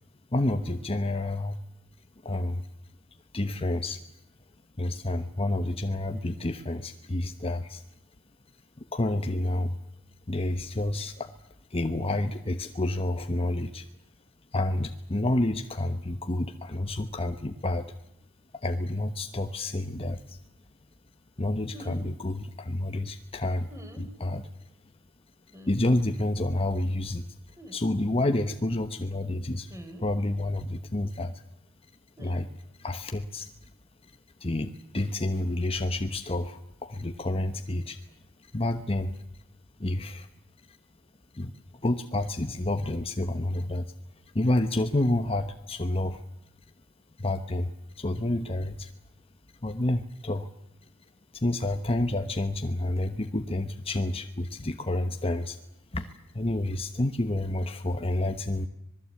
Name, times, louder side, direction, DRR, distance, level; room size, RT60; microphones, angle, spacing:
voice 1, 0.3-1.6 2.2-2.7 3.3-4.0 4.8-7.8 8.8-9.8 10.3-11.3 11.7-13.9 14.5-17.9 18.5-20.4 21.4-24.7 25.7-31.4 32.2-32.5 32.8-33.7 34.0-38.0 38.5-39.2 39.8-40.3 40.7-40.8 41.3-41.5 41.8-43.9 44.3-46.2 47.2-48.9 49.6-50.5 50.8-50.9 51.3-55.6 55.9-58.7, left 1 dB, 25° left, 7 dB, 1.1 m, -29 dB
sound 1, 21.7-22.0 23.7-24.1 25.5-25.8 27.6-27.8 29.7-30.1 32.2-32.4, equal, 15° right, 3.8 m, -45 dB
26.0 x 20.0 x 8.5 m, 0.85 s
head